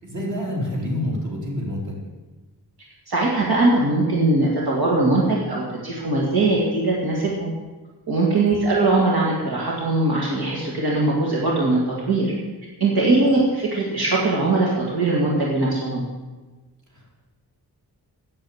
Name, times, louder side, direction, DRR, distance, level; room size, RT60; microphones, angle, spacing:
voice 1, 0.0-1.9 16.9-17.2, left 1 dB, 45° right, -2 dB, 3.2 m, -27 dB
voice 2, 3.1-7.5 8.1-11.8 12.1-12.3 12.8-16.0, right 2 dB, 70° right, -4 dB, 2.3 m, -21 dB
9.0 x 8.1 x 7.8 m, 1.2 s
wide cardioid pair, 125°, 39 cm